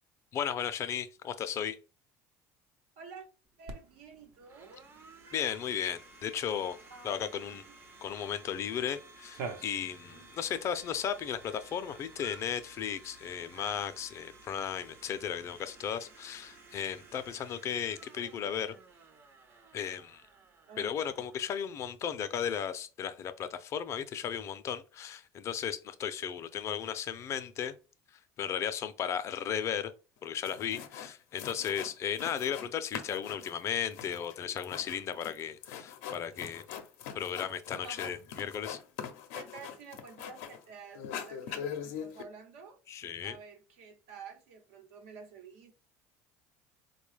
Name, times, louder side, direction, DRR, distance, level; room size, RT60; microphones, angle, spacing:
voice 1, 0.3-1.8 5.3-6.8 7.0-7.6 8.0-18.8 19.7-20.2 20.8-27.8 28.4-29.9 30.2-36.6 37.1-38.8 42.9-43.4, left 8 dB, 40° left, 0.5 m, -35 dB
voice 2, 3.0-3.3 3.6-4.9 6.9-7.8 10.1-10.7 20.7-21.2 37.8-38.2 39.3-42.8 43.2-45.7, right 5 dB, 90° right, 1.0 m, -50 dB
Domestic sounds home sounds, 3.5-22.3, right 3 dB, 30° right, 0.6 m, -56 dB
Cat, 3.7-17.3, right 5 dB, 65° right, 0.8 m, -51 dB
sound 1, 30.2-30.3 30.4-31.1 31.4-32.7 32.9-40.6 40.9-42.2, left 8 dB, 85° left, 0.6 m, -42 dB
3.8 x 2.3 x 3.2 m
supercardioid pair, 115°, 7 cm